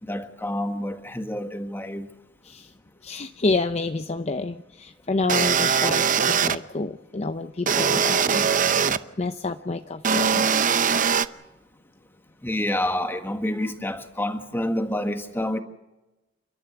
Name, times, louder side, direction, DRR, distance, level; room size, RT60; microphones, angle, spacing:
voice 1, 0.0-2.1 12.4-15.6, left 1 dB, 10° left, 1.6 m, -28 dB
voice 2, 3.0-8.5 8.8-10.5, left 3 dB, 35° left, 0.7 m, -29 dB
sound 1, 5.3-6.6 7.7-9.0 10.0-11.3, right 7 dB, 45° right, 0.7 m, -21 dB
29.5 x 13.0 x 8.0 m
head